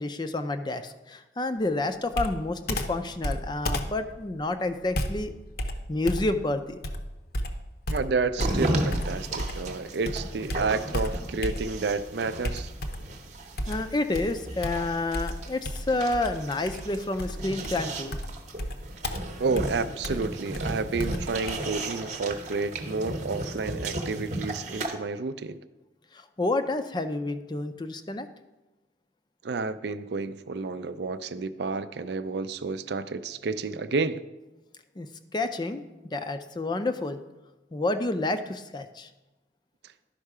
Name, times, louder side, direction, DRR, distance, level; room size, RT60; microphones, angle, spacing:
voice 1, 0.0-5.3 5.9-6.8 13.7-18.2 26.1-28.3 35.0-35.1 35.3-35.8 36.1-37.2 37.7-39.1, left 2 dB, 25° left, 9 dB, 0.4 m, -29 dB
Computer keyboard, 2.1-9.7 10.0-11.9 12.4-13.2 13.6-21.6, equal, 55° left, 0.7 m, -33 dB
voice 2, 7.9-12.7 19.4-25.6 29.4-34.2, right 4 dB, 65° right, 12 dB, 0.4 m, -30 dB
sound 1, 8.4-25.0, right 1 dB, 40° right, 0.9 m, -35 dB
11.5 x 5.5 x 4.8 m, 1.1 s
head